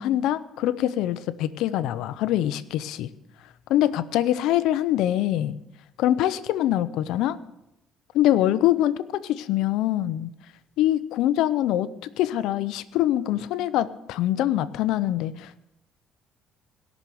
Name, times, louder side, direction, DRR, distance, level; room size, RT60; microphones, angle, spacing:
voice 1, 0.0-3.1 3.7-5.6 6.0-7.4 8.1-10.3 10.8-15.6, left 13 dB, 80° left, 15 dB, 0.6 m, -24 dB
17.5 x 6.3 x 7.0 m, 0.86 s
cardioid pair, 145°, 0 cm